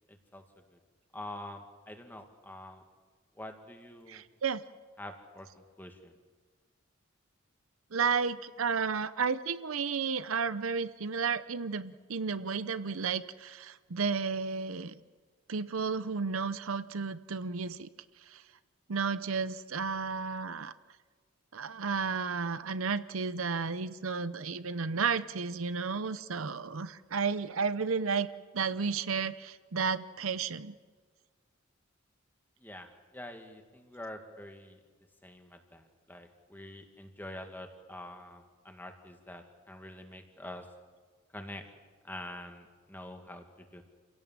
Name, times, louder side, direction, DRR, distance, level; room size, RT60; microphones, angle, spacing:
voice 1, 0.1-0.4 0.7-0.8 1.1-2.8 3.3-4.2 5.0-6.2 32.6-34.8 35.2-40.7 41.3-41.6 42.0-43.8, left 1 dB, 10° left, 5 dB, 1.9 m, -46 dB
voice 2, 4.1-4.6 7.9-15.0 15.5-17.9 18.3-18.4 18.9-20.7 21.5-28.3 28.5-30.7, right 5 dB, 85° right, 14 dB, 0.8 m, -32 dB
28.0 x 17.0 x 7.4 m, 1.5 s
head